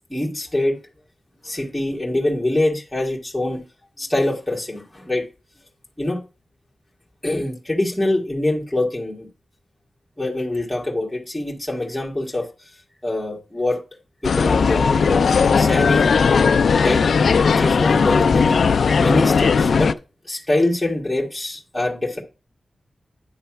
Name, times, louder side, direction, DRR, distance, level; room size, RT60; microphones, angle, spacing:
voice 1, 0.1-0.8 1.4-3.6 4.0-5.2 6.0-6.2 7.2-9.3 10.2-12.5 13.0-13.8 14.2-16.2 16.8-17.0 17.5-18.7 19.0-19.9 20.3-22.2, left 1 dB, 5° left, 1.7 m, -24 dB
sound 1, 14.2-19.9, left 5 dB, 75° left, 0.4 m, -17 dB
9.6 x 3.3 x 5.8 m
wide cardioid pair, 135°, 0 cm